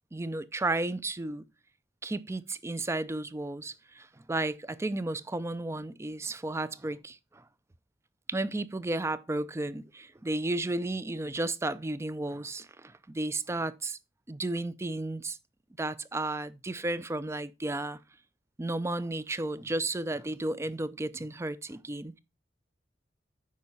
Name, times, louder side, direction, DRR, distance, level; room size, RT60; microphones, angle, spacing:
voice 1, 0.1-1.4 2.0-7.4 8.3-14.0 14.3-15.4 15.8-18.0 18.6-22.2, right 2 dB, 15° right, 0.4 m, -33 dB
8.4 x 5.4 x 4.1 m
head